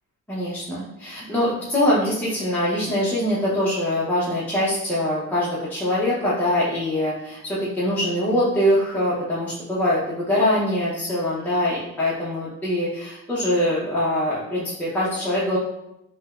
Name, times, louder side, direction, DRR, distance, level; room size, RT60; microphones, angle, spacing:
voice 1, 0.3-15.6, left 1 dB, 5° left, -9 dB, 0.7 m, -23 dB
3.2 x 2.2 x 2.3 m, 0.85 s
cardioid pair, 90°, 30 cm